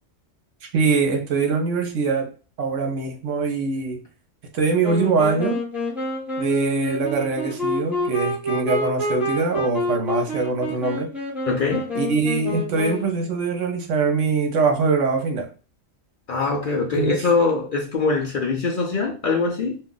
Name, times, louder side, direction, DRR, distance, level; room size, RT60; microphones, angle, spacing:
voice 1, 0.6-2.3 2.6-4.0 4.5-5.6 6.4-11.1 11.9-15.5 16.9-17.2, right 4 dB, 70° right, 1.1 m, -23 dB
Wind instrument woodwind instrument, 4.8-13.2, left 1 dB, ahead, 0.8 m, -28 dB
voice 2, 11.5-11.9 16.3-19.8, left 4 dB, 55° left, 0.6 m, -22 dB
2.6 x 2.4 x 3.7 m
omnidirectional pair, 1.3 m